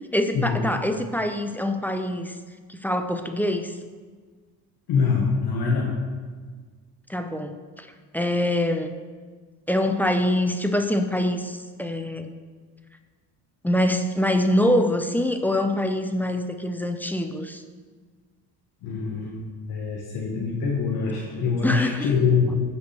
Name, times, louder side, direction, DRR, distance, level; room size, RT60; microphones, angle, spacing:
voice 1, 0.1-2.4 2.7-3.7 7.1-7.9 8.1-9.0 9.7-12.3 13.6-17.6 21.6-22.1, left 1 dB, 5° left, 6 dB, 0.6 m, -24 dB
voice 2, 4.9-6.0 18.8-19.4 19.7-22.6, left 5 dB, 65° left, -3 dB, 1.5 m, -24 dB
14.0 x 5.2 x 3.4 m, 1.5 s
supercardioid pair, 90°, 41 cm